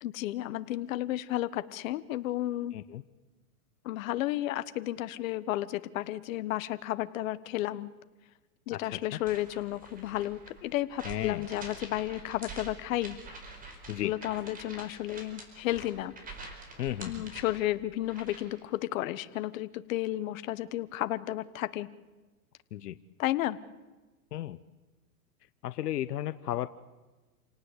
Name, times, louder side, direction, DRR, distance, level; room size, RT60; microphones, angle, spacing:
voice 1, 0.0-2.7 3.8-7.9 8.7-13.2 14.0-16.1 17.1-21.9 23.2-23.6, left 15 dB, 55° left, 13 dB, 1.4 m, -32 dB
voice 2, 2.7-3.0 8.7-9.2 11.0-11.5 13.9-14.1 16.8-17.3 22.7-23.0 24.3-24.6 25.6-26.7, left 13 dB, 85° left, 13 dB, 1.0 m, -34 dB
sound 1, 9.1-18.6, right 3 dB, 20° right, 4.8 m, -47 dB
28.5 x 18.5 x 8.2 m, 1.2 s
hypercardioid pair, 140°, 46 cm